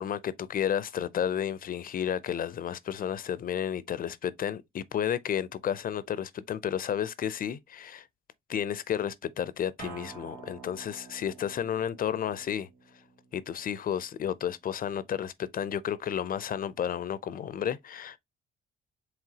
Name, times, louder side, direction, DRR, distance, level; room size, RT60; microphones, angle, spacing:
voice 1, 0.0-8.1 8.5-12.7 13.3-18.2, left 9 dB, 45° left, 0.4 m, -32 dB
Acoustic guitar, 9.8-15.0, right 5 dB, 85° right, 2.5 m, -50 dB
4.8 x 3.1 x 2.8 m
cardioid pair, 90°, 20 cm